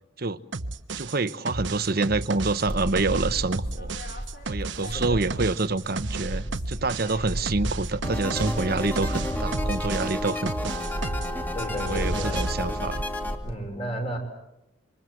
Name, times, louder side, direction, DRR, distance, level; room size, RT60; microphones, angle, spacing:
sound 1, 0.5-11.3 11.6-12.5, right 3 dB, 70° right, 1.1 m, -33 dB
voice 1, 0.9-3.9 4.5-10.8 11.7-13.1, right 3 dB, 50° right, 1.0 m, -27 dB
sound 2, 2.7-5.5 5.8-13.5, equal, 50° left, 3.6 m, -34 dB
voice 2, 4.9-5.3 11.5-12.5 13.4-14.2, equal, 30° left, 5.3 m, -33 dB
sound 3, 8.0-13.4, left 1 dB, 10° left, 2.2 m, -32 dB
27.0 x 25.5 x 7.9 m
head